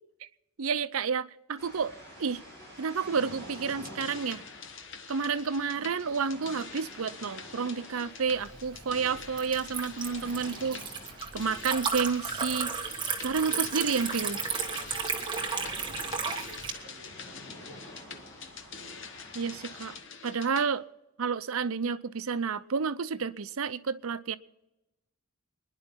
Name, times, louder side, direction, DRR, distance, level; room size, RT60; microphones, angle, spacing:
voice 1, 0.6-2.4 2.8-4.4 5.1-10.8 11.3-12.7 13.2-14.4 19.3-19.9 20.2-20.8 21.2-24.4, right 5 dB, 70° right, 14 dB, 0.6 m, -30 dB
sound 1, 1.6-20.0, equal, 15° left, 6.5 m, -50 dB
sound 2, 3.5-20.7, left 5 dB, 55° left, 1.1 m, -46 dB
Liquid, 8.3-16.7, right 5 dB, 20° right, 1.4 m, -34 dB
voice 2, 14.1-18.5, equal, 35° left, -4 dB, 5.4 m, -54 dB
26.5 x 10.5 x 3.7 m, 0.97 s
head